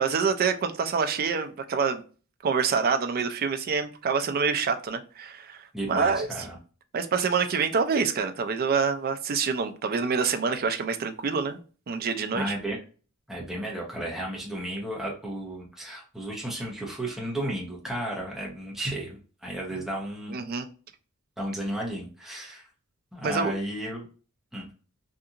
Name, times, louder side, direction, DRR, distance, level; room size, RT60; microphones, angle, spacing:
voice 1, 0.0-2.0 2.4-6.3 6.9-11.6 11.9-12.6 20.3-20.7 23.2-23.5, right 5 dB, 45° right, 7 dB, 0.4 m, -26 dB
voice 2, 5.7-6.6 12.3-12.8 13.3-20.3 21.4-22.7 23.1-24.1 24.5-24.7, right 1 dB, ahead, -3 dB, 0.8 m, -33 dB
2.8 x 2.5 x 2.4 m, 0.37 s
head